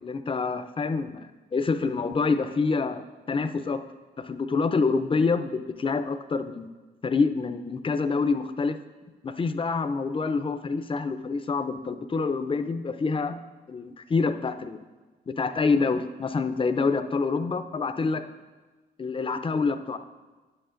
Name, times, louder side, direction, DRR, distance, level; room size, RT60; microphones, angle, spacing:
voice 1, 0.0-3.8 4.2-6.7 7.0-8.8 9.2-13.4 13.7-14.8 15.3-18.2 19.0-20.0, left 4 dB, 30° left, 9 dB, 0.5 m, -27 dB
10.5 x 7.9 x 2.5 m, 1.3 s
cardioid pair, 75°, 18 cm